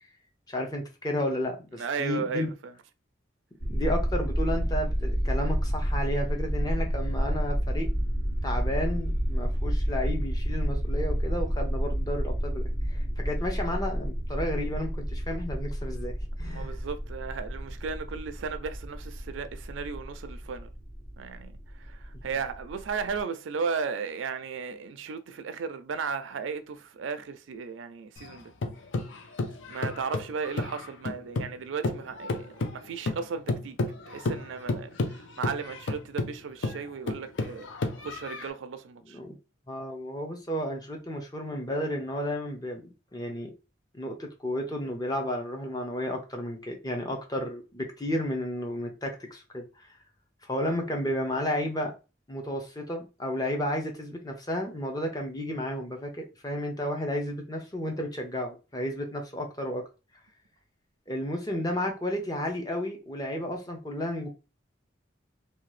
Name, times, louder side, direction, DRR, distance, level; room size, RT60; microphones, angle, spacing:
voice 1, 0.5-2.5 3.7-7.9 8.4-16.8 39.0-39.4 39.7-43.5 43.9-49.9 50.4-51.9 52.3-59.9 61.1-64.3, left 1 dB, 20° left, 0.6 m, -32 dB
voice 2, 1.8-2.5 16.4-20.7 21.2-28.5 29.7-33.8 34.1-37.7 38.0-39.2, right 5 dB, 85° right, 0.4 m, -35 dB
sound 1, 3.6-23.2, equal, 65° left, 1.6 m, -30 dB
sound 2, 28.2-31.6 31.8-38.5, left 3 dB, 80° left, 0.5 m, -32 dB
2.8 x 2.3 x 3.1 m
head